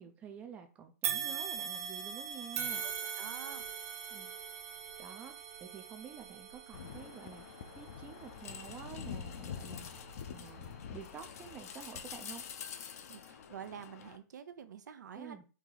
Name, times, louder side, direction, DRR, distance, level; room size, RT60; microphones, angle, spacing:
voice 1, 0.0-2.8 4.1-4.3 5.0-9.9 10.3-12.4 15.1-15.4, right 7 dB, 15° right, 6 dB, 0.4 m, -50 dB
sound 1, 1.0-10.3 10.9-11.0 12.0-12.1, right 7 dB, 60° right, 0.7 m, -41 dB
voice 2, 2.8-3.7 13.1-15.4, right 8 dB, 90° right, 10 dB, 0.7 m, -48 dB
sound 2, 6.7-14.2, left 7 dB, 60° left, 0.6 m, -46 dB
4.7 x 2.7 x 3.8 m, 0.34 s
hypercardioid pair, 160°, 9 cm